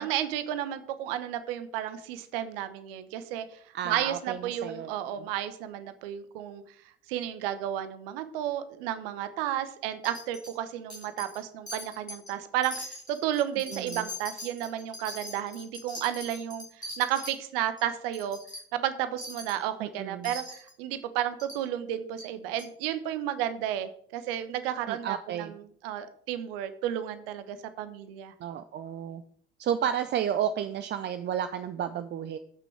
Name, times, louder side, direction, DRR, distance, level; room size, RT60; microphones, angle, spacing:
voice 1, 0.0-3.6 3.8-6.6 7.1-18.4 18.7-28.3, right 11 dB, 65° right, 11 dB, 0.9 m, -32 dB
voice 2, 3.7-4.9 13.7-14.1 19.8-20.3 24.9-25.5 28.4-29.2 29.6-32.4, right 9 dB, 35° right, 10 dB, 0.5 m, -32 dB
Wind chime, 10.0-10.6 10.9-11.4 11.7-12.3 12.6-17.3 17.8-17.9 18.1-18.6 19.2-19.6 20.2-20.7 21.4-21.6 22.2-22.3 22.6-22.7, left 1 dB, 90° left, 2.1 m, -41 dB
13.5 x 6.0 x 3.4 m, 0.62 s
figure-of-eight pair, 55°, 32 cm